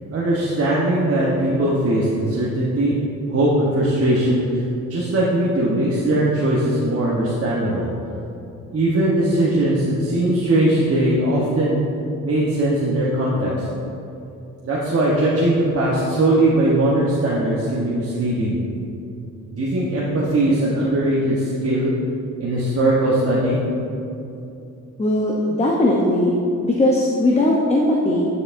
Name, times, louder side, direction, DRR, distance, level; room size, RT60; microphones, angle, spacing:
voice 1, 0.1-3.0 3.3-4.6 4.9-7.9 8.7-11.8 12.2-13.7 14.6-18.6 19.5-21.9 22.4-23.6, right 1 dB, 45° right, -6 dB, 1.1 m, -20 dB
voice 2, 25.0-26.4 26.6-28.3, left 1 dB, 20° left, -3 dB, 0.7 m, -18 dB
9.6 x 6.6 x 2.6 m, 2.7 s
cardioid pair, 105°, 32 cm